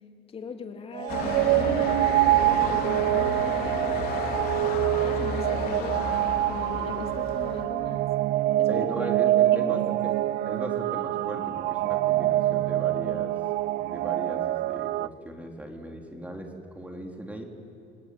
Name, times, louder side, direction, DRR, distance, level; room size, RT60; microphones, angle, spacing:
voice 1, 0.3-2.0 2.4-4.1 5.0-6.2 6.5-8.1 8.6-9.1 9.5-9.9, left 5 dB, 35° left, 4 dB, 2.9 m, -39 dB
sound 1, 0.9-15.1, right 15 dB, 75° right, 0.5 m, -25 dB
sound 2, 1.1-7.6, left 5 dB, 60° left, 3.9 m, -33 dB
voice 2, 8.7-10.2 10.4-13.3 13.8-17.4, right 1 dB, 10° right, 2 dB, 3.5 m, -38 dB
28.5 x 19.5 x 9.4 m, 2.5 s
cardioid pair, 120°, 17 cm